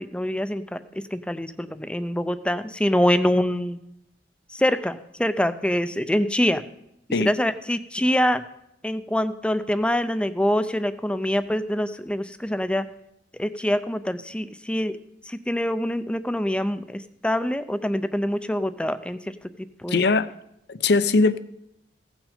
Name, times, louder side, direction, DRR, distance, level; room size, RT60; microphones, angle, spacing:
voice 1, 0.0-3.8 4.5-6.6 7.2-8.4 8.8-12.9 13.3-15.0 15.2-20.0, equal, 5° left, 12 dB, 0.4 m, -25 dB
voice 2, 19.9-20.3 20.7-21.4, left 3 dB, 60° left, 14 dB, 0.5 m, -20 dB
16.0 x 6.2 x 5.0 m, 0.82 s
head